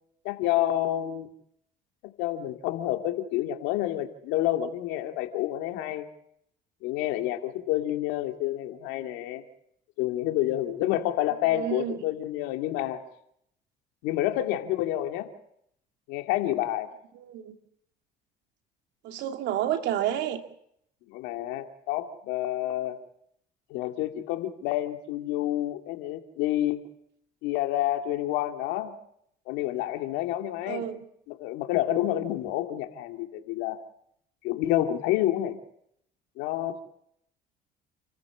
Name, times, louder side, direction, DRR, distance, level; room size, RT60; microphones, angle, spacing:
voice 1, 0.2-1.3 2.2-6.1 6.8-9.4 10.0-13.0 14.0-15.3 16.1-16.9 21.1-23.0 23.7-26.8 27.4-28.9 29.5-30.8 31.3-33.8 34.4-35.6 36.4-36.8, left 13 dB, 80° left, 2.6 m, -28 dB
voice 2, 11.5-12.0 17.1-17.6 19.0-20.4 30.7-31.0, right 11 dB, 70° right, 2.6 m, -30 dB
29.5 x 14.5 x 7.4 m
supercardioid pair, 80°, 19 cm